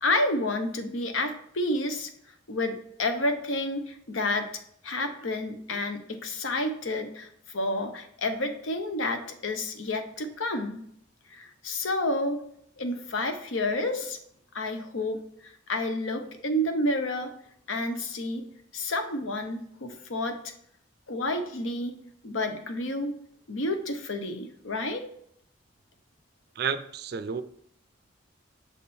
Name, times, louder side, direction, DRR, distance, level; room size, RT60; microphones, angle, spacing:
voice 1, 0.0-2.1 2.5-4.5 4.8-10.8 11.3-12.4 12.8-14.2 14.5-17.3 17.7-18.4 18.7-20.5 21.1-22.0 22.2-23.1 23.5-25.0, left 1 dB, 80° left, 7 dB, 0.8 m, -30 dB
voice 2, 26.6-27.4, right 6 dB, 55° right, 12 dB, 0.4 m, -31 dB
6.4 x 3.6 x 4.3 m, 0.68 s
head